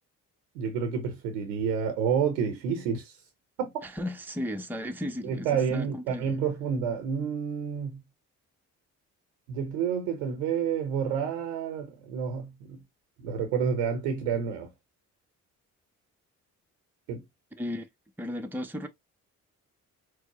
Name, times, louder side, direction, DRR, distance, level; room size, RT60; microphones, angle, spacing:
voice 1, 0.5-3.2 3.6-3.7 5.2-8.0 9.5-12.8 13.2-14.7 17.1-17.2, right 7 dB, 90° right, 0.7 m, -29 dB
voice 2, 3.8-6.3 17.6-17.9 18.2-18.9, left 1 dB, 5° right, 0.7 m, -35 dB
4.6 x 2.1 x 2.9 m
hypercardioid pair, 40°, 40 cm